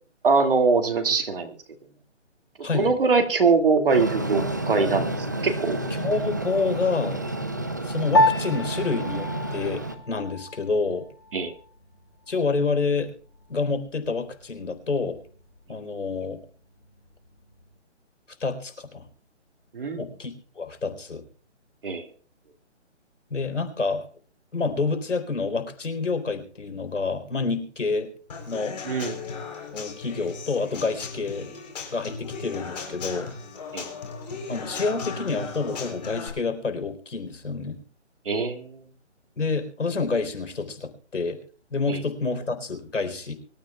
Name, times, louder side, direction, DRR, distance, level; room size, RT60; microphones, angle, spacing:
voice 1, 0.2-1.5 2.7-5.8 11.3-11.5 19.7-20.0 21.8-22.0 28.9-29.1 33.7-33.9 38.3-38.8 41.9-42.0, right 4 dB, 50° right, 5 dB, 2.4 m, -22 dB
voice 2, 2.6-2.9 6.0-7.2 7.8-11.1 12.3-13.1 13.5-15.2 15.7-16.4 18.4-19.0 20.0-21.2 23.3-24.1 24.5-28.1 28.4-28.8 29.7-31.5 31.9-33.3 34.5-37.8 39.4-41.4 41.7-43.3, left 4 dB, 90° left, 7 dB, 4.1 m, -28 dB
Train, 3.9-10.0, right 2 dB, 15° right, 0.6 m, -30 dB
Piano, 8.1-17.8, left 1 dB, 20° left, 0.8 m, -30 dB
Human voice / Acoustic guitar / Drum, 28.3-36.3, left 5 dB, 35° left, 3.9 m, -37 dB
24.0 x 13.5 x 2.4 m, 0.41 s
hypercardioid pair, 170°, 36 cm